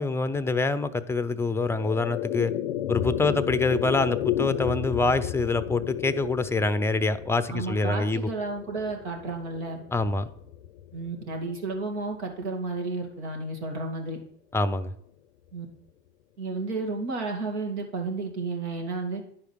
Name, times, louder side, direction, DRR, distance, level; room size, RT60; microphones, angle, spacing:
voice 1, 0.0-2.5 2.9-8.3 9.9-10.3 14.5-14.9, left 3 dB, 5° left, 13 dB, 0.6 m, -25 dB
sound 1, 1.3-11.8, left 12 dB, 80° left, 0.6 m, -33 dB
voice 2, 7.5-9.8 10.9-14.2 15.5-15.7 16.4-19.2, right 3 dB, 75° right, 2 dB, 2.3 m, -32 dB
10.0 x 4.9 x 6.3 m, 0.66 s
hypercardioid pair, 80°, 34 cm